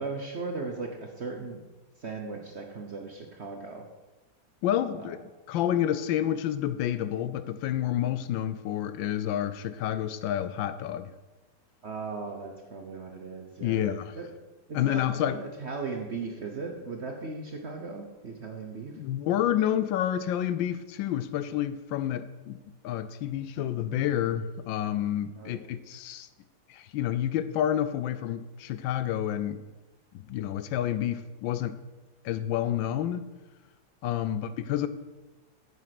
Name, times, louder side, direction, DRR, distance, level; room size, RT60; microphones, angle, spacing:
voice 1, 0.0-1.6 2.0-3.8 4.9-5.2 11.8-14.3 14.7-18.9 25.3-25.5 34.3-34.5, right 4 dB, 50° right, 3 dB, 0.8 m, -37 dB
voice 2, 4.6-5.2 5.5-11.1 13.6-14.2 14.7-15.4 19.0-22.6 22.8-26.3 26.7-29.6 30.1-31.8 32.2-33.2 34.0-34.9, left 11 dB, 80° left, 13 dB, 1.3 m, -29 dB
7.9 x 7.5 x 5.9 m, 1.2 s
omnidirectional pair, 2.1 m